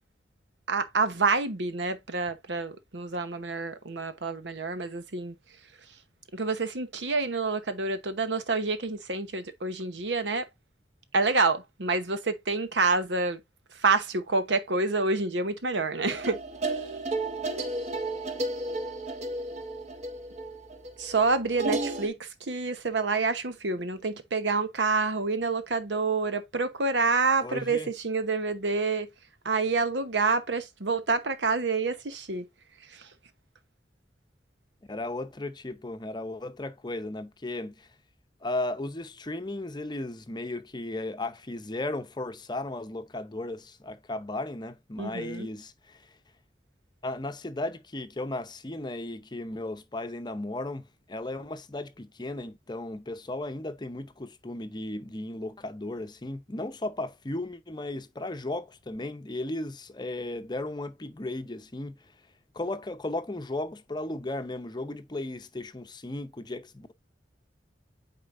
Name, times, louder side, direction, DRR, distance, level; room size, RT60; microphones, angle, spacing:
voice 1, 0.7-5.3 6.3-10.5 11.1-13.4 13.8-16.4 21.0-29.1 29.4-32.5 32.9-33.1 45.0-45.5, right 4 dB, 90° right, 1.0 m, -28 dB
sound 1, 16.1-22.1, right 2 dB, 40° right, 1.1 m, -33 dB
voice 2, 27.4-27.9 34.9-37.9 38.4-46.0 47.0-50.8 51.1-61.9 62.5-66.9, left 2 dB, 25° left, 0.7 m, -35 dB
8.8 x 4.4 x 2.6 m
head